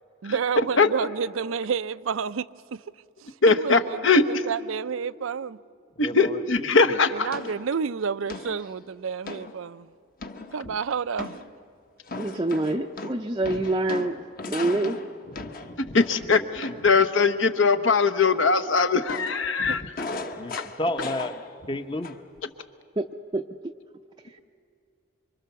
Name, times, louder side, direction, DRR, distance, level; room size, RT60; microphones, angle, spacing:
voice 1, 0.2-2.5 2.7-2.8 3.2-4.0 4.3-5.6 7.1-9.9 10.5-11.4 19.7-19.8, right 6 dB, 75° right, 0.5 m, -30 dB
voice 2, 3.4-4.2 6.0-7.3 15.9-19.8, left 4 dB, 65° left, 1.1 m, -21 dB
voice 3, 6.0-7.0 16.3-16.8 20.4-22.2, left 1 dB, 25° left, 0.8 m, -33 dB
sound 1, 7.3-7.7 8.3-8.7 9.3-9.5 10.2-10.8 11.2-11.6 12.1-17.0 19.1-21.8 22.0-22.4, left 3 dB, 45° left, 1.2 m, -37 dB
voice 4, 12.2-14.2 14.5-15.0 23.0-23.4 24.2-24.4, right 2 dB, 20° right, 0.5 m, -26 dB
26.0 x 24.5 x 6.9 m
head